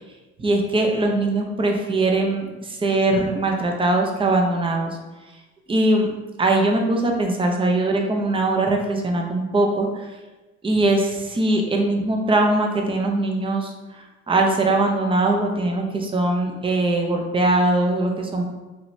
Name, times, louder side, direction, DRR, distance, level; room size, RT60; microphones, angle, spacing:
voice 1, 0.4-5.0 5.7-6.1 6.4-10.2 10.6-18.4, right 2 dB, 20° right, 2 dB, 0.5 m, -21 dB
6.0 x 3.1 x 2.6 m, 1.1 s
cardioid pair, 160°, 29 cm